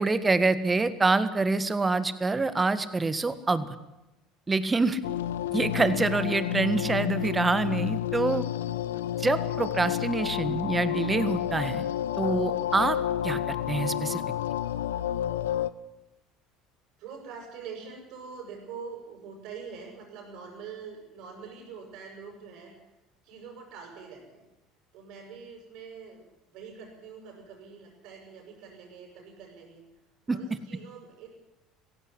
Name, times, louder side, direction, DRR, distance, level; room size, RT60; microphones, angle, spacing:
voice 1, 0.0-3.8 4.5-5.0 5.5-8.4 9.2-11.9 12.2-13.0 13.2-14.2 30.3-30.4, right 3 dB, 20° right, 13 dB, 1.7 m, -26 dB
sound 1, 5.0-15.7, left 12 dB, 85° left, 0.6 m, -30 dB
voice 2, 17.0-22.7 23.2-24.5 24.9-29.8 30.3-31.3, right 6 dB, 65° right, 1 dB, 7.2 m, -44 dB
16.5 x 16.0 x 10.0 m, 0.97 s
hypercardioid pair, 75°, 0 cm